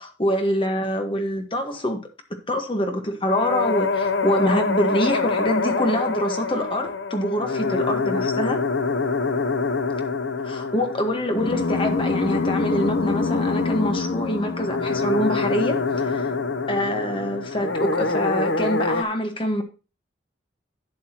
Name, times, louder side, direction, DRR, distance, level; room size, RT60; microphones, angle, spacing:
voice 1, 0.0-2.0 2.5-8.6 10.4-16.3 16.7-19.6, equal, 30° left, 1.4 m, -25 dB
sound 1, 3.2-19.0, left 4 dB, 75° left, 0.8 m, -25 dB
11.5 x 7.3 x 2.9 m
head